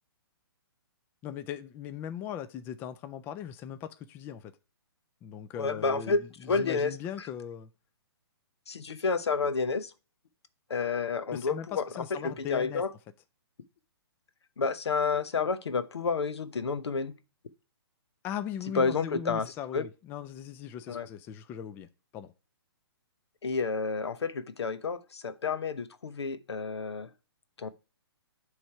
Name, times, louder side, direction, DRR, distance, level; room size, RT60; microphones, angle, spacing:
voice 1, 1.2-4.5 5.2-6.2 6.4-7.7 11.3-12.8 18.2-21.9 22.1-22.3, left 9 dB, 15° left, 0.3 m, -39 dB
voice 2, 5.6-7.3 8.7-9.9 10.7-12.9 14.6-17.2 18.7-19.9 20.9-21.1 23.4-27.1 27.6-27.7, left 4 dB, 90° left, 0.8 m, -30 dB
8.6 x 3.3 x 4.6 m
hypercardioid pair, 145°, 13 cm